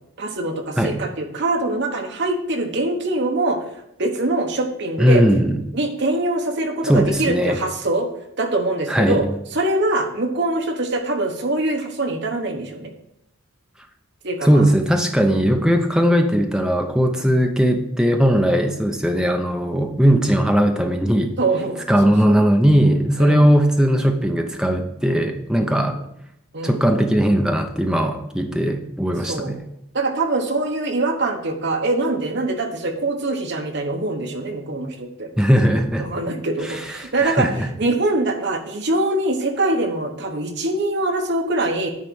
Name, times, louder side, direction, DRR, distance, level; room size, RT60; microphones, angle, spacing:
voice 1, 0.2-3.6 4.0-5.2 5.7-8.1 8.4-9.2 9.5-12.9 14.2-14.7 15.4-15.6 17.2-17.3 21.4-22.4 23.2-23.4 25.7-25.9 26.5-26.9 29.3-29.5 29.9-35.3 36.0-37.5 37.8-41.9, right 2 dB, 55° right, 4 dB, 1.2 m, -23 dB
voice 2, 5.0-5.6 6.8-7.6 8.9-9.2 14.4-21.3 21.9-26.0 26.6-29.6 35.4-36.1 36.6-37.7, equal, 5° right, 4 dB, 0.7 m, -18 dB
9.9 x 4.1 x 6.3 m, 0.78 s
head